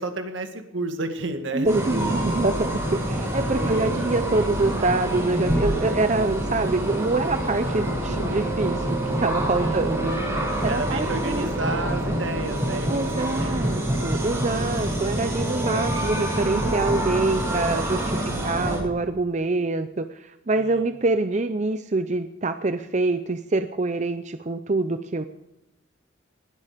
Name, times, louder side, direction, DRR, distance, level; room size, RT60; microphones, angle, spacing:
voice 1, 0.0-2.3 3.5-4.0 9.6-9.9 10.7-13.7 18.2-18.8 20.5-20.9, right 2 dB, 70° right, 6 dB, 2.1 m, -32 dB
voice 2, 1.5-10.2 10.6-11.5 12.9-25.2, right 2 dB, 35° right, 9 dB, 0.6 m, -25 dB
sound 1, 1.7-18.8, right 1 dB, 15° right, 7.8 m, -26 dB
20.0 x 13.0 x 5.1 m, 0.96 s
head